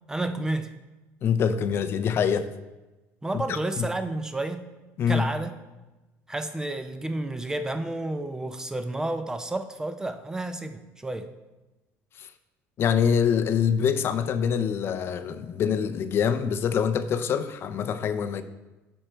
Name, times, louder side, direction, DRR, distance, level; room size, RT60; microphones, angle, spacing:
voice 1, 0.1-0.7 3.2-4.7 5.1-5.5 6.3-11.3, right 2 dB, 10° right, 9 dB, 0.4 m, -31 dB
voice 2, 1.2-2.5 5.0-5.3 12.2-12.3 12.8-18.4, left 7 dB, 40° left, 11 dB, 0.5 m, -25 dB
11.0 x 4.4 x 4.4 m, 1.1 s
cardioid pair, 140°, 6 cm